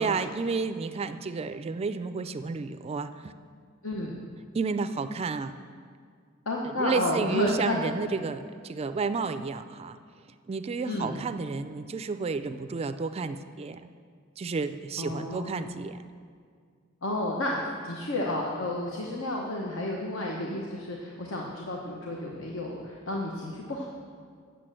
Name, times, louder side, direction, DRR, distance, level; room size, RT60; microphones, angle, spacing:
voice 1, 0.0-3.3 4.5-5.6 6.6-10.0 10.5-13.9 14.4-16.0, right 4 dB, 30° right, 11 dB, 0.3 m, -31 dB
voice 2, 3.8-4.3 6.5-7.8 10.9-11.2 15.0-15.7 17.0-23.9, left 1 dB, 70° left, -1 dB, 1.0 m, -31 dB
8.7 x 6.7 x 7.5 m, 2.1 s
head